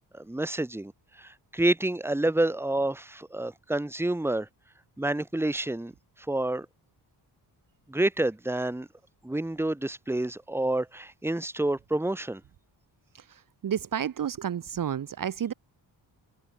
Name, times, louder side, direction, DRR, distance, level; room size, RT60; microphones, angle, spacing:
voice 1, 0.1-0.9 1.2-4.5 5.0-5.9 6.3-6.7 7.9-8.9 9.2-12.4, right 1 dB, 5° right, 1.7 m, -28 dB
voice 2, 13.6-15.5, right 9 dB, 50° right, 1.3 m, -30 dB
cardioid pair, 125°, 42 cm